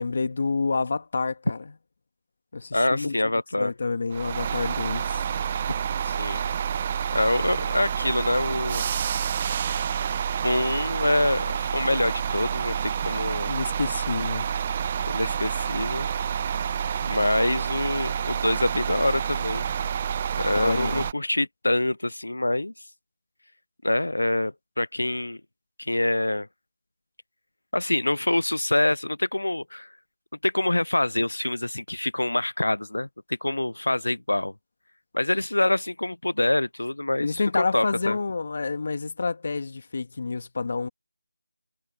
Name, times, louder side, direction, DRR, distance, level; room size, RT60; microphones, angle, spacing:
voice 1, 0.0-1.6 2.5-3.1 3.6-5.2 9.5-9.6 13.5-14.5 20.5-21.1 37.2-40.9, left 4 dB, 35° left, 1.8 m, -28 dB
voice 2, 2.7-3.7 6.0-6.4 7.1-8.8 10.4-13.5 15.1-16.1 17.0-19.7 20.4-22.7 23.8-25.4 25.8-26.5 27.7-29.9 30.4-34.5 35.1-38.2, left 1 dB, 80° left, 0.4 m, -25 dB
sound 1, 4.1-21.1, right 8 dB, 20° right, 0.7 m, -28 dB
figure-of-eight pair, 175°, 0 cm